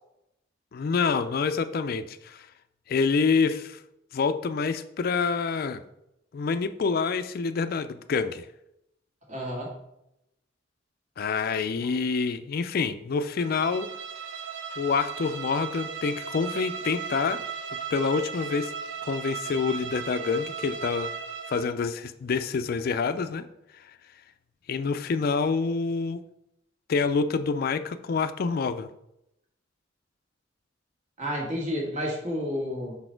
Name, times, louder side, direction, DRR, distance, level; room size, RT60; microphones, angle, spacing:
voice 1, 0.7-2.5 2.9-3.8 4.1-5.8 6.3-8.5 11.2-13.9 14.8-17.4 17.9-18.7 19.0-21.1 21.5-23.5 24.7-26.2 26.9-28.9, left 5 dB, 50° left, 11 dB, 0.4 m, -27 dB
voice 2, 9.3-9.8 11.8-11.9 31.2-33.0, equal, 40° right, -3 dB, 1.6 m, -31 dB
Bowed string instrument, 13.4-21.7, right 6 dB, 90° right, 0.6 m, -36 dB
5.6 x 4.2 x 4.5 m, 0.83 s
head